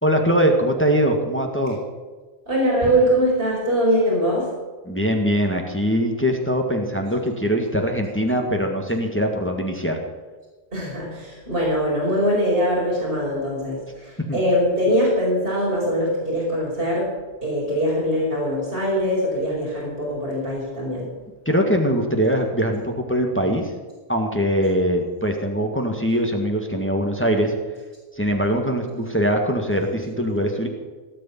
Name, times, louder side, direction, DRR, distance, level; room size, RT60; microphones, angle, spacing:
voice 1, 0.0-1.8 4.9-10.0 14.2-14.4 21.5-23.7 24.1-27.5 28.2-30.7, equal, 10° left, 2 dB, 1.8 m, -22 dB
voice 2, 2.5-4.5 10.7-17.1 17.4-21.1, equal, 60° right, -6 dB, 5.4 m, -22 dB
18.0 x 6.8 x 9.9 m, 1.3 s
omnidirectional pair, 1.1 m